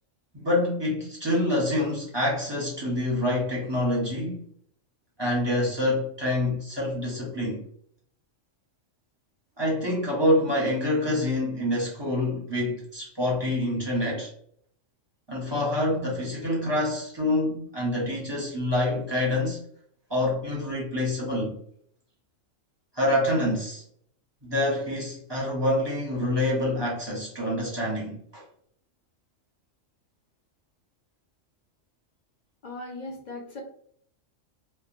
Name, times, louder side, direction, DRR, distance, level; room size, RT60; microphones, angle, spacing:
voice 1, 0.3-4.4 5.2-7.6 9.6-14.3 15.3-19.6 20.1-21.6 22.9-23.8 24.4-28.4, left 1 dB, 25° right, 0.7 m, -26 dB
voice 2, 32.6-33.6, left 2 dB, 55° left, 0.5 m, -38 dB
2.9 x 2.1 x 2.5 m
omnidirectional pair, 1.4 m